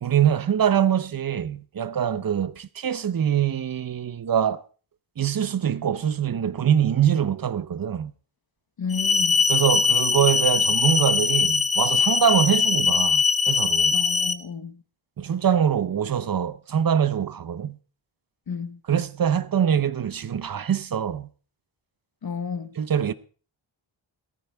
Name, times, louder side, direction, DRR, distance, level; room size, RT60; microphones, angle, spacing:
voice 1, 0.0-4.6 5.2-8.1 9.5-14.0 15.2-17.8 18.9-21.3 22.8-23.1, right 8 dB, 45° right, 0.7 m, -24 dB
voice 2, 8.8-9.5 13.9-14.8 18.5-18.8 22.2-22.7, left 6 dB, 50° left, 1.1 m, -32 dB
sound 1, 8.9-14.3, left 5 dB, 15° left, 0.8 m, -21 dB
17.5 x 14.5 x 3.4 m
wide cardioid pair, 165°, 47 cm